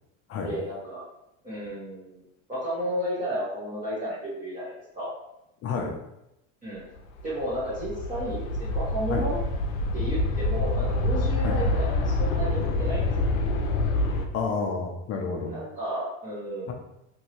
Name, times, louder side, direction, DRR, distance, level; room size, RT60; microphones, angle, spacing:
voice 1, 0.4-1.0 1.4-2.2 2.5-5.1 6.6-6.8 7.2-9.4 9.9-13.3 15.5-16.7, equal, 20° right, -10 dB, 1.0 m, -33 dB
voice 2, 5.6-6.0 9.1-9.3 11.4-11.6 14.3-15.6, left 4 dB, 40° left, 2 dB, 0.5 m, -29 dB
sound 1, 7.0-14.3, left 2 dB, 85° left, 0.6 m, -26 dB
3.1 x 2.6 x 2.8 m, 0.86 s
supercardioid pair, 115°, 39 cm